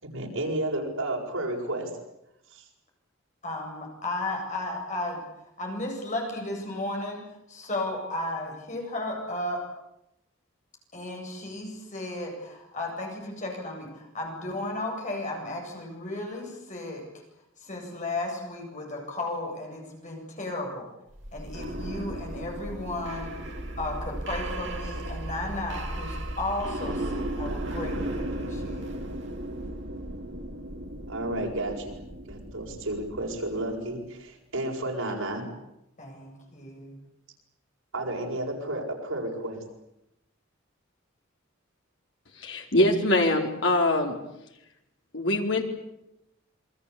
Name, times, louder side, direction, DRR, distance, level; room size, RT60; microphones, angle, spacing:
voice 1, 0.0-1.9 2.5-2.6 31.1-31.9 32.3-35.5 37.9-39.6, right 1 dB, 85° right, -1 dB, 7.9 m, -32 dB
voice 2, 3.4-5.2 5.6-7.2 7.5-9.6 10.9-17.0 17.6-20.9 21.3-29.0 36.0-37.0, left 2 dB, 35° left, 0 dB, 7.9 m, -34 dB
sound 1, 21.1-33.9, right 1 dB, 60° right, 3.4 m, -35 dB
voice 3, 42.4-44.2 45.1-45.7, left 1 dB, 60° left, 2 dB, 4.6 m, -23 dB
28.5 x 23.0 x 8.7 m, 0.85 s
head